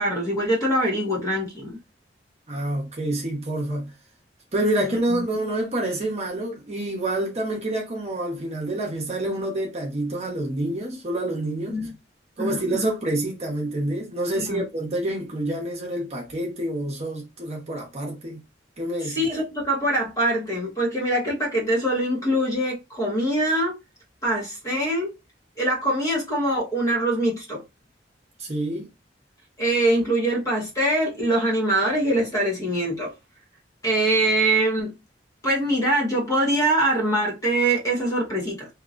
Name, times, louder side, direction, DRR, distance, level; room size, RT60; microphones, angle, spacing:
voice 1, 0.0-1.8 4.8-5.0 11.7-11.9 12.4-12.9 14.4-14.6 19.0-23.8 24.2-25.1 25.6-27.6 29.6-33.1 33.8-34.9 35.4-38.7, right 1 dB, 20° left, 1.2 m, -23 dB
voice 2, 2.5-3.9 4.5-11.8 12.4-18.4 18.8-19.2 28.4-28.9, right 1 dB, 35° right, 0.9 m, -27 dB
2.8 x 2.8 x 2.5 m
head